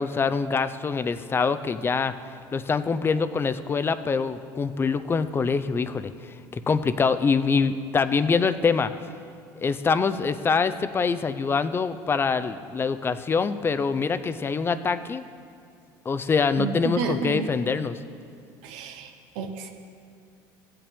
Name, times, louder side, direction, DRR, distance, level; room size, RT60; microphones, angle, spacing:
voice 1, 0.0-2.1 2.5-6.1 6.5-8.9 9.6-15.2 16.1-18.0, left 5 dB, 25° left, 12 dB, 0.5 m, -24 dB
voice 2, 16.6-17.5 18.6-19.1 19.4-19.7, right 6 dB, 75° right, 4 dB, 0.8 m, -30 dB
15.0 x 8.7 x 3.5 m, 2.3 s
supercardioid pair, 100°, 10 cm